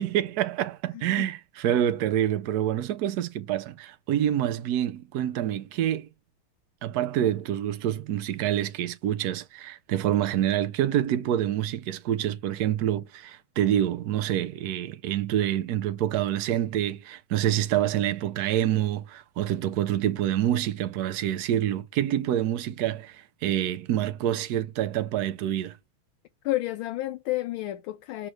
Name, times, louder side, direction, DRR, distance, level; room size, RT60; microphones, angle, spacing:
voice 1, 0.0-6.1 6.8-25.8, right 11 dB, 70° right, 0.9 m, -27 dB
voice 2, 0.9-1.3 26.4-28.3, left 16 dB, 75° left, 1.4 m, -31 dB
7.5 x 3.1 x 6.2 m
omnidirectional pair, 2.3 m